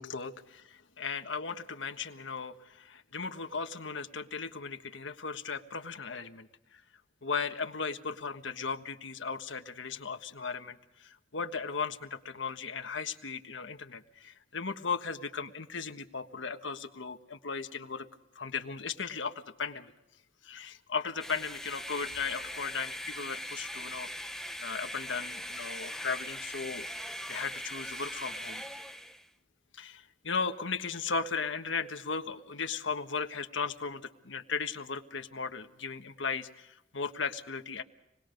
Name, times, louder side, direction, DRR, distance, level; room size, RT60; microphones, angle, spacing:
voice 1, 0.0-6.8 7.2-18.1 18.3-19.9 20.4-26.9 27.3-28.6 29.7-37.8, left 5 dB, 85° left, 7 dB, 1.4 m, -37 dB
sound 1, 21.2-29.3, equal, 5° left, 0.9 m, -40 dB
27.0 x 20.5 x 5.2 m, 0.87 s
head